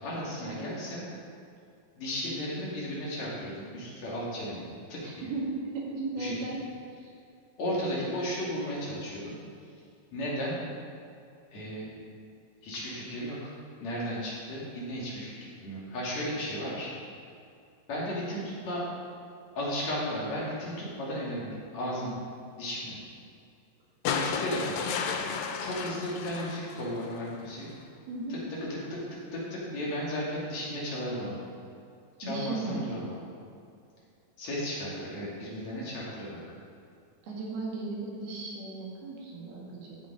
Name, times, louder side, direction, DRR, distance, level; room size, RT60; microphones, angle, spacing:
voice 1, 0.0-1.0 2.0-5.3 6.2-6.6 7.6-9.3 10.1-10.6 11.5-11.9 12.6-13.5 13.8-15.3 15.6-16.9 17.9-18.9 19.6-22.2 22.6-23.0 24.1-24.9 25.6-27.7 28.3-31.4 32.2-33.1 34.4-36.4, equal, 50° left, -6 dB, 3.6 m, -34 dB
voice 2, 5.0-6.6 28.1-28.4 32.2-32.9 37.3-40.0, right 3 dB, 85° right, -4 dB, 4.1 m, -35 dB
sound 1, 24.0-27.3 28.7-28.8, left 6 dB, 75° left, 2.3 m, -33 dB
13.0 x 7.5 x 5.0 m, 2.5 s
omnidirectional pair, 4.3 m